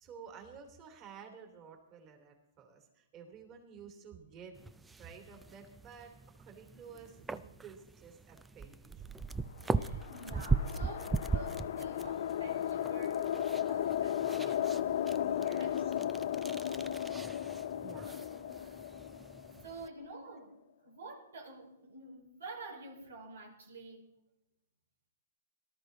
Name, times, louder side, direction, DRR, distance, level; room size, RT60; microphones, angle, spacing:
voice 1, 0.0-9.1 15.1-16.2 17.8-18.1 18.7-18.9, right 6 dB, 30° right, 3 dB, 3.2 m, -52 dB
sound 1, 4.5-19.9, right 4 dB, 5° right, 0.4 m, -40 dB
sound 2, 9.7-20.1, left 10 dB, 60° left, 0.6 m, -35 dB
voice 2, 9.7-15.2 15.6-15.9 18.0-18.8 19.6-20.6 20.8-24.1, right 3 dB, 85° right, 0 dB, 4.9 m, -49 dB
18.0 x 12.5 x 4.0 m, 0.85 s
hypercardioid pair, 150°, 0 cm